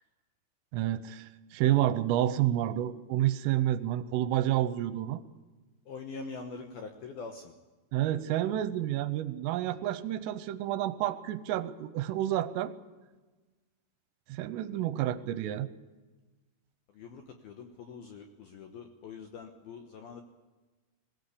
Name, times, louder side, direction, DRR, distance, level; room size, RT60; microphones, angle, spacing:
voice 1, 0.7-5.2 7.9-12.7 14.3-15.7, right 13 dB, 80° right, 13 dB, 3.4 m, -29 dB
voice 2, 5.9-7.5 16.9-20.2, left 4 dB, 70° left, 5 dB, 2.3 m, -44 dB
21.5 x 16.5 x 8.4 m, 1.2 s
omnidirectional pair, 5.9 m